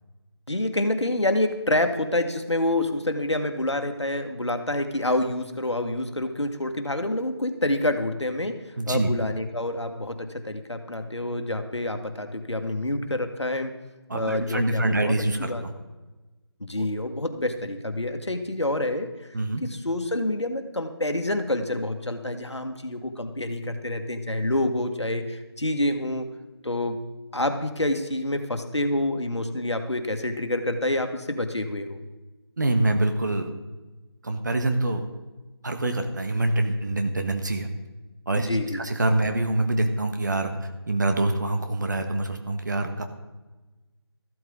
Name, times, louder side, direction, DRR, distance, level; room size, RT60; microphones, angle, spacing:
voice 1, 0.5-8.6 8.9-13.7 14.1-15.6 16.6-26.3 26.6-27.0 27.3-32.0 38.4-38.8, left 1 dB, 90° left, 6 dB, 1.7 m, -27 dB
voice 2, 8.8-9.1 14.1-15.7 16.8-16.9 19.3-19.6 32.6-33.5 34.2-35.1 35.6-37.7 38.3-38.5 38.7-40.5 40.9-43.0, right 2 dB, 45° right, 6 dB, 1.4 m, -25 dB
14.0 x 12.5 x 3.9 m, 1.2 s
figure-of-eight pair, 165°, 14 cm